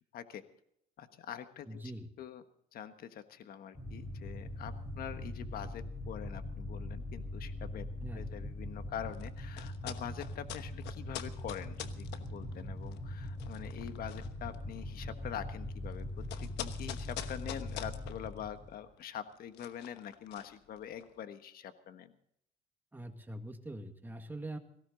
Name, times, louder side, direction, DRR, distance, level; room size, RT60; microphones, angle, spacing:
voice 1, 1.0-1.8 2.2-2.4 2.7-7.9 8.1-16.1 16.4-22.1, left 9 dB, 60° left, 9 dB, 1.4 m, -44 dB
voice 2, 1.7-2.1 8.0-8.3 22.9-24.6, right 1 dB, 10° right, 5 dB, 1.9 m, -43 dB
sound 1, 3.7-18.9, left 1 dB, 15° left, 3.1 m, -42 dB
sound 2, 9.1-21.2, left 12 dB, 85° left, 1.1 m, -47 dB
18.5 x 16.0 x 3.9 m, 0.71 s
cardioid pair, 110°, 17 cm